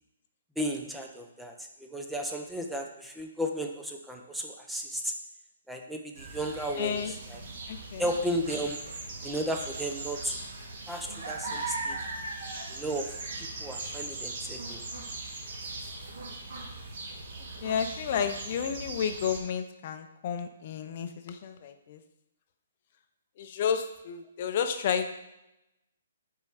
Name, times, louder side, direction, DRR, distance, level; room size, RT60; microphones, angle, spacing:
voice 1, 0.6-5.1 5.7-7.4 8.0-8.8 9.2-10.4 10.9-12.0 12.7-13.1 13.4-14.8, equal, 5° right, 2 dB, 0.5 m, -34 dB
sound 1, 6.2-19.4, right 2 dB, 60° right, 1.4 m, -39 dB
voice 2, 6.8-7.1 7.7-8.0 17.6-22.0 23.4-25.1, left 7 dB, 45° left, 8 dB, 0.6 m, -31 dB
5.2 x 4.4 x 4.9 m, 0.89 s
hypercardioid pair, 150°, 0 cm